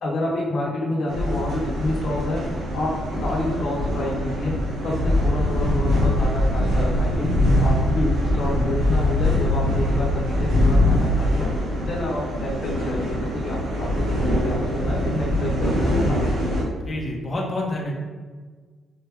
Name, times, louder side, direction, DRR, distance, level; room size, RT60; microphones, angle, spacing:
voice 1, 0.0-2.4 2.7-2.9 3.2-4.5 4.8-7.3 7.6-11.5 11.8-13.2 13.4-13.9 14.2-16.5, left 1 dB, 55° left, -7 dB, 1.1 m, -28 dB
sound 1, 1.1-16.6, left 1 dB, 70° right, 1.4 m, -22 dB
voice 2, 16.8-17.9, left 1 dB, 30° left, -3 dB, 1.2 m, -28 dB
4.2 x 3.2 x 3.4 m, 1.5 s
cardioid pair, 90°, 0 cm